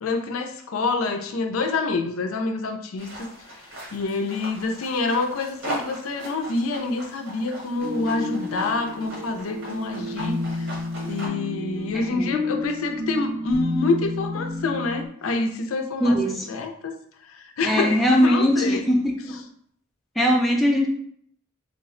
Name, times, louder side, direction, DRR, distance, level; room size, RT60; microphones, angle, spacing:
voice 1, 0.0-3.3 3.9-10.7 11.0-16.2 16.5-17.0 17.3-18.8, left 3 dB, 85° left, 5 dB, 0.4 m, -27 dB
sound 1, 3.0-11.3, right 1 dB, 75° right, 1.3 m, -39 dB
sound 2, 7.8-15.1, left 2 dB, 35° right, 0.7 m, -31 dB
voice 2, 11.9-12.3 16.0-16.5 17.6-19.4 20.2-20.9, equal, ahead, -2 dB, 0.4 m, -21 dB
3.2 x 2.1 x 3.7 m, 0.63 s
head